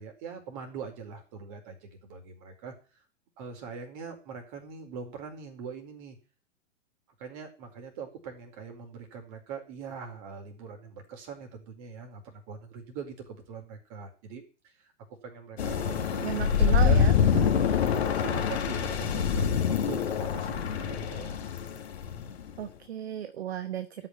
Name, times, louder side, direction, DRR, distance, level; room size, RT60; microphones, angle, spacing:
voice 1, 0.0-2.7 3.4-6.2 7.2-14.7 15.2-17.1 18.0-21.4, right 6 dB, 40° right, 4 dB, 4.7 m, -42 dB
sound 1, 15.6-22.5, left 7 dB, 60° left, 2.0 m, -26 dB
voice 2, 16.2-17.5 22.6-24.1, right 9 dB, 60° right, 11 dB, 1.1 m, -34 dB
13.0 x 6.1 x 9.7 m, 0.38 s
figure-of-eight pair, 105°, 37 cm